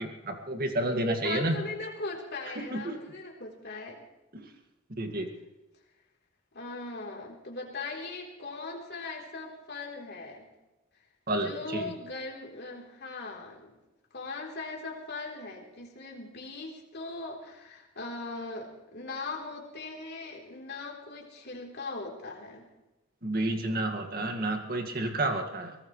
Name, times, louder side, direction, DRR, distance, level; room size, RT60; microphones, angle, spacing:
voice 1, 0.0-1.6 2.7-3.0 4.3-4.4 5.0-5.3 11.3-11.8 23.2-25.8, right 1 dB, 45° right, 4 dB, 2.1 m, -30 dB
voice 2, 1.2-4.0 6.5-10.5 11.3-13.8 14.1-22.6, left 3 dB, 50° left, 0 dB, 3.9 m, -39 dB
23.5 x 18.0 x 3.3 m, 1.0 s
head